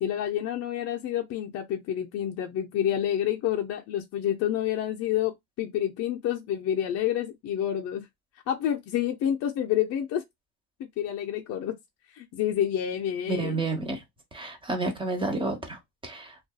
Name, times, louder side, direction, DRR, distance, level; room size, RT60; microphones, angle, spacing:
voice 1, 0.0-8.1 8.5-10.2 10.8-11.8 12.1-13.6, left 10 dB, 45° left, 0.5 m, -28 dB
voice 2, 13.3-14.0 14.3-16.4, right 2 dB, 15° right, 0.9 m, -30 dB
2.6 x 2.4 x 2.2 m
supercardioid pair, 105°, 36 cm